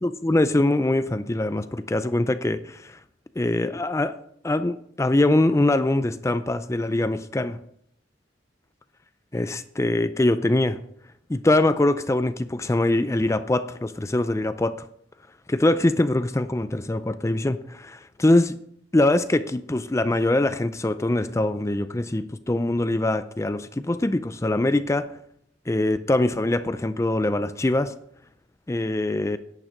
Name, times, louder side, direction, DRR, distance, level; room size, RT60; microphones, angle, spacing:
voice 1, 0.0-3.0 3.4-4.1 4.4-7.6 9.3-10.8 11.3-14.8 15.5-18.5 18.9-25.1 25.7-27.9 28.7-29.4, left 1 dB, 15° left, 12 dB, 0.4 m, -23 dB
11.0 x 9.0 x 5.1 m, 0.69 s
head